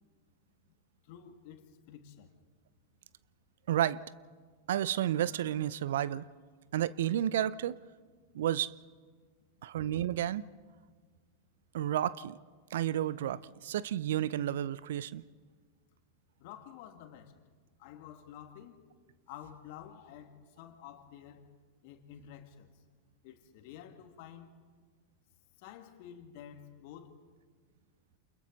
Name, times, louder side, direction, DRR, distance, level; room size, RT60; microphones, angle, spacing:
voice 1, 1.0-2.3 16.4-17.4 17.8-18.9 19.3-21.5 21.8-22.7 23.2-24.5 25.6-27.2, left 10 dB, 55° left, 2.2 m, -50 dB
voice 2, 3.7-4.0 4.7-6.3 6.7-7.8 8.3-8.7 9.6-10.4 11.7-12.4 12.7-15.2, right 11 dB, 65° right, 0.6 m, -31 dB
29.5 x 28.0 x 4.0 m
figure-of-eight pair, 90°, 0 cm